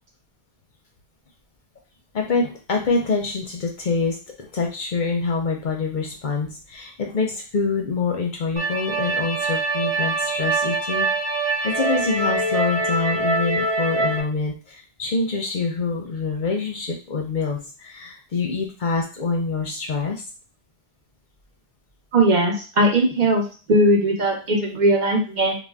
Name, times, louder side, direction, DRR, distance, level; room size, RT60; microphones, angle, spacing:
voice 1, 2.1-11.1 11.6-20.2, left 4 dB, 55° left, 1 dB, 0.7 m, -26 dB
sound 1, 8.6-14.2, right 2 dB, 90° right, 0.9 m, -24 dB
voice 2, 22.1-23.4 23.7-25.6, right 1 dB, 50° right, -1 dB, 0.8 m, -19 dB
2.5 x 2.2 x 3.3 m, 0.34 s
omnidirectional pair, 1.0 m